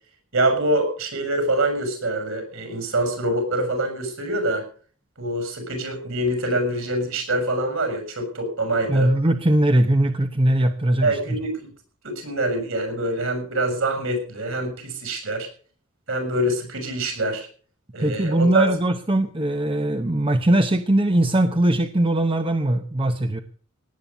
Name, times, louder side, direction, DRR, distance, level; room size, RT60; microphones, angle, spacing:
voice 1, 0.3-4.6 5.2-9.1 11.0-11.7 12.0-15.5 16.1-17.5 17.9-18.7, right 1 dB, 60° right, 6 dB, 6.4 m, -25 dB
voice 2, 8.9-11.4 18.0-23.4, right 1 dB, 25° right, 7 dB, 0.8 m, -20 dB
18.0 x 8.9 x 6.8 m, 0.44 s
head